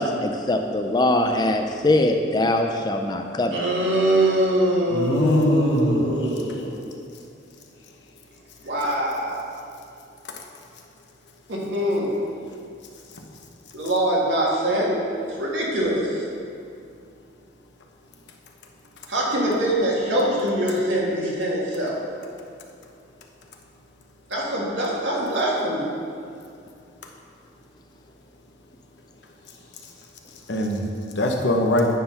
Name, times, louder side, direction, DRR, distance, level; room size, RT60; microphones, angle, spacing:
voice 1, 0.0-3.6, left 1 dB, 20° left, 5 dB, 0.4 m, -22 dB
voice 2, 3.5-6.8 8.6-9.5 11.5-12.1 13.7-14.9 15.4-16.3 19.1-22.0 24.3-25.9, right 1 dB, 80° right, -4 dB, 1.8 m, -23 dB
voice 3, 4.9-6.0 30.5-30.8 31.2-31.9, left 1 dB, 75° left, 1 dB, 0.9 m, -21 dB
9.4 x 3.8 x 5.6 m, 2.4 s
head